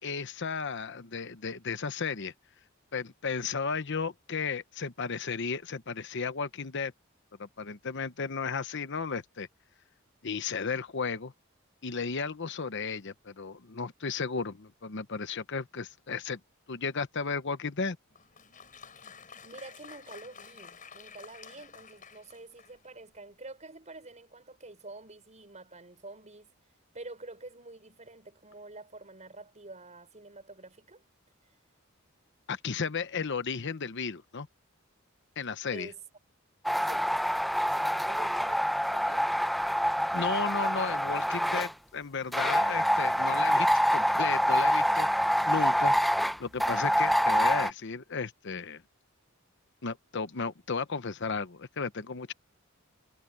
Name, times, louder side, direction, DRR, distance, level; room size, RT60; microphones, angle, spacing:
voice 1, 0.0-2.3 2.9-6.9 7.4-9.5 10.2-11.3 11.8-16.4 16.7-18.0 32.5-34.5 35.4-35.9 40.1-45.1 45.5-45.9 46.4-48.8 49.8-52.3, left 5 dB, 60° left, 0.9 m, -34 dB
Applause, 18.1-23.0, left 6 dB, 40° left, 6.7 m, -51 dB
voice 2, 19.4-26.5 26.9-31.0 35.7-36.0 36.8-37.1 37.7-38.7 38.9-39.3, right 2 dB, 35° right, 6.3 m, -47 dB
sound 1, 36.7-41.7 42.3-47.7, equal, ahead, 0.6 m, -26 dB
head